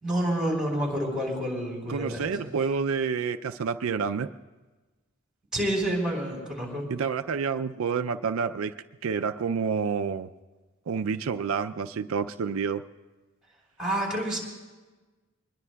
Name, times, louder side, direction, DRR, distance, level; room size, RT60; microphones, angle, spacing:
voice 1, 0.0-2.5 5.5-6.8 13.8-14.4, right 1 dB, 5° right, -2 dB, 4.0 m, -28 dB
voice 2, 1.9-4.3 6.9-8.7 9.0-10.3 10.9-12.8, right 5 dB, 80° right, 9 dB, 0.4 m, -28 dB
23.5 x 21.0 x 2.3 m, 1.2 s
head